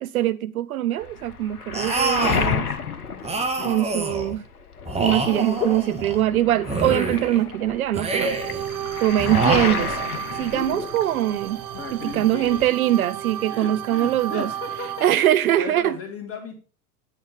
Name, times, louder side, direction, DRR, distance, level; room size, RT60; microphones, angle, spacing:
voice 1, 0.0-2.7 3.6-4.4 5.0-8.4 9.0-10.0 10.3-11.6 12.0-14.5 15.0-15.9, right 13 dB, 70° right, 0.5 m, -22 dB
Waves surf, 1.0-4.2 4.5-11.5 11.7-12.7, left 7 dB, 80° left, 1.1 m, -31 dB
sound 1, 1.7-2.5 3.2-4.3 4.9-6.2 6.6-7.4 7.9-8.6 9.2-10.2, right 3 dB, 15° right, 1.5 m, -26 dB
voice 2, 3.4-3.8 11.7-12.9 13.5-16.6, left 4 dB, 30° left, 2.4 m, -36 dB
sound 2, 8.0-15.1, right 11 dB, 35° right, 0.8 m, -33 dB
9.6 x 6.6 x 4.9 m
figure-of-eight pair, 80°, 45 cm